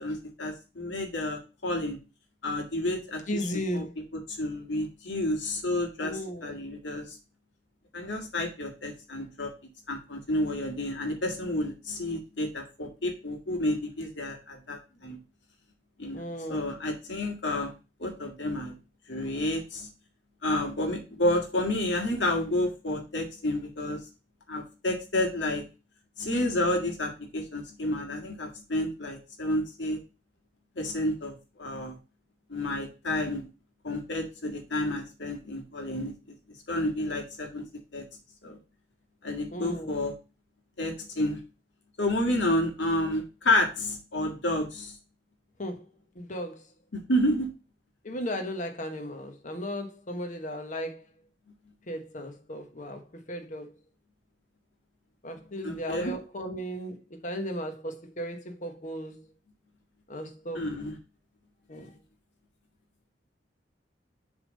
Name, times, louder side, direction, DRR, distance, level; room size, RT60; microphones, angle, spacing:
voice 1, 0.0-2.0 2.4-3.2 3.7-3.9 4.1-7.2 7.9-9.5 9.9-15.2 16.0-17.7 18.0-18.7 19.1-19.9 20.4-24.0 24.5-25.7 26.2-30.0 30.8-32.0 32.5-33.4 33.8-36.1 36.7-37.6 37.9-38.0 38.4-38.6 39.2-40.1 40.8-41.4 42.0-45.0 46.9-47.5 55.6-56.1 60.5-61.0, left 1 dB, 85° left, 1.9 m, -30 dB
voice 2, 3.3-3.9 6.0-6.5 16.1-16.7 39.5-40.1 45.6-45.8 46.2-46.6 48.0-51.0 51.9-53.7 55.2-59.2 60.1-60.6 61.7-61.9, equal, 45° left, 1.2 m, -35 dB
6.9 x 3.4 x 5.3 m
head